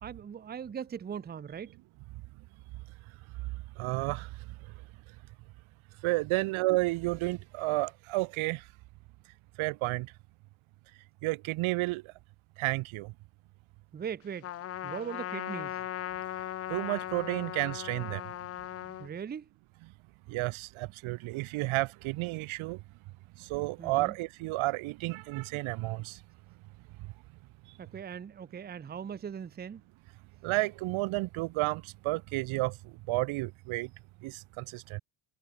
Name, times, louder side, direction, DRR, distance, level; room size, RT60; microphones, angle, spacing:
voice 1, 0.0-1.7 13.9-14.5 14.8-15.8 19.0-19.5 23.8-24.1 27.8-29.8, right 7 dB, 20° right, 1.0 m, -40 dB
voice 2, 3.8-4.3 6.0-8.6 9.6-10.1 11.2-12.0 12.6-13.1 16.7-18.2 20.3-22.8 23.4-26.2 30.4-32.7 33.1-33.9 34.2-35.0, right 21 dB, 75° right, 2.3 m, -31 dB
Trumpet, 14.4-19.1, left 12 dB, 30° left, 0.5 m, -38 dB
cardioid pair, 175°, 49 cm